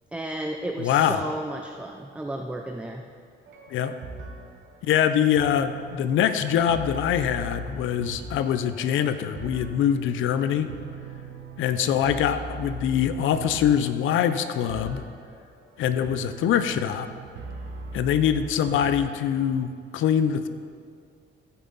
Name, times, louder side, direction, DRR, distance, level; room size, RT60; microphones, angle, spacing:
voice 1, 0.1-3.0, right 1 dB, 5° right, 3 dB, 0.5 m, -33 dB
voice 2, 0.8-1.2 3.7-3.9 4.8-10.7 11.6-15.0 15.8-17.1 17.9-20.5, left 9 dB, 80° left, 11 dB, 0.6 m, -24 dB
sound 1, 3.5-19.4, right 3 dB, 70° right, 1.2 m, -40 dB
15.0 x 5.7 x 4.0 m, 2.2 s
cardioid pair, 90°, 20 cm